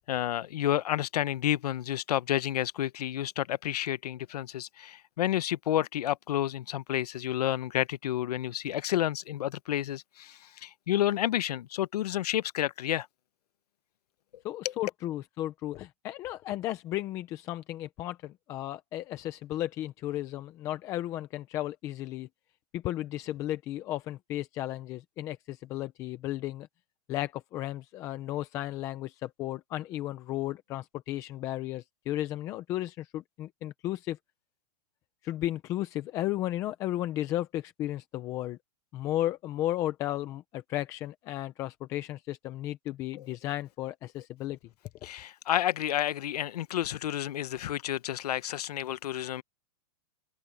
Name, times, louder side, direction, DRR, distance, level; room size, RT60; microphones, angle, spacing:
voice 1, 0.1-13.1 43.2-43.3 45.0-49.4, left 12 dB, 80° left, 0.8 m, -30 dB
voice 2, 14.4-22.3 22.7-26.7 27.1-34.2 35.2-38.6 38.9-44.6, left 14 dB, 15° left, 0.5 m, -34 dB
open air
supercardioid pair, 175°, 20 cm